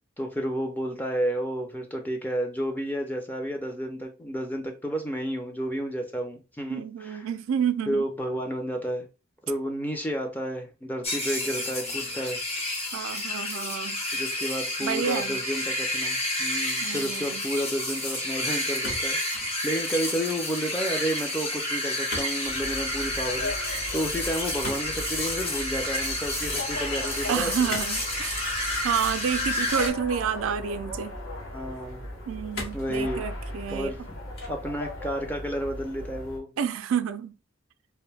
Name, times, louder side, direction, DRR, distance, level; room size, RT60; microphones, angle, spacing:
voice 1, 0.2-7.2 7.9-9.1 9.5-12.4 14.1-27.5 31.5-32.1 32.7-33.2 33.7-34.2 34.5-36.5, equal, 10° left, 0.4 m, -31 dB
voice 2, 6.7-8.1 12.9-14.0 14.8-15.4 16.8-17.4 27.3-28.5 28.8-31.2 32.3-34.1 36.6-37.4, right 7 dB, 85° right, 0.3 m, -29 dB
sound 1, 11.0-29.9, left 1 dB, 30° left, 0.8 m, -30 dB
sound 2, 18.8-19.6 19.9-20.4 22.1-22.4 22.6-22.9 24.6-25.4 27.7-28.0 28.4-28.6 29.6-30.3 31.0-31.1 32.5-32.9 33.5-34.0 34.3-34.7, left 2 dB, 55° left, 0.9 m, -38 dB
sound 3, 22.4-36.4, left 1 dB, 80° left, 0.9 m, -38 dB
2.5 x 2.1 x 3.2 m
head